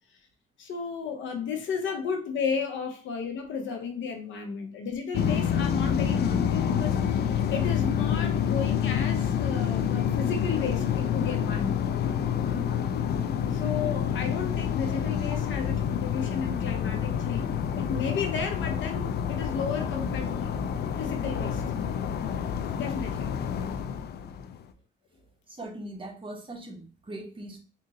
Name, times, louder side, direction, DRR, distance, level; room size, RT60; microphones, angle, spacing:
voice 1, 0.6-11.8 13.5-20.5 21.0-21.6 22.7-23.3, left 5 dB, 70° left, 4 dB, 0.9 m, -33 dB
sound 1, 5.1-24.6, left 8 dB, 55° left, 0.4 m, -28 dB
voice 2, 25.5-27.6, right 1 dB, 25° right, 1 dB, 1.1 m, -40 dB
3.6 x 2.7 x 2.8 m, 0.34 s
cardioid pair, 90°, 20 cm